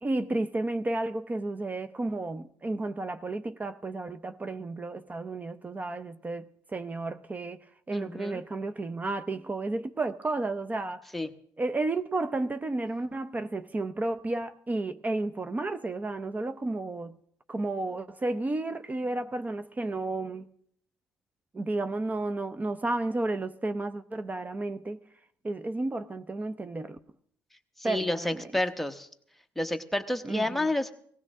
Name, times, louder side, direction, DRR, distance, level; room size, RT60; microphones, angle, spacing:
voice 1, 0.0-11.0 11.6-17.2 17.5-20.5 21.5-25.0 25.4-27.0 27.8-28.5 30.2-30.7, right 2 dB, 20° right, 0.6 m, -32 dB
voice 2, 7.9-8.4 11.1-11.3 27.8-29.1 29.6-30.9, left 1 dB, ahead, 1.0 m, -30 dB
18.0 x 16.0 x 3.6 m
cardioid pair, 95°, 7 cm